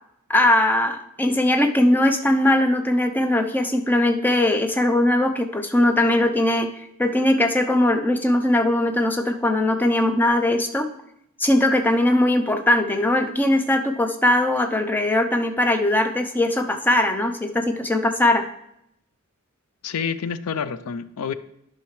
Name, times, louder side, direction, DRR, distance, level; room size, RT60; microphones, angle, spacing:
voice 1, 0.3-10.9 11.4-18.5, left 1 dB, 10° left, 6 dB, 0.6 m, -20 dB
voice 2, 19.8-21.3, left 6 dB, 85° left, 14 dB, 0.4 m, -28 dB
11.5 x 5.7 x 3.2 m, 0.76 s
head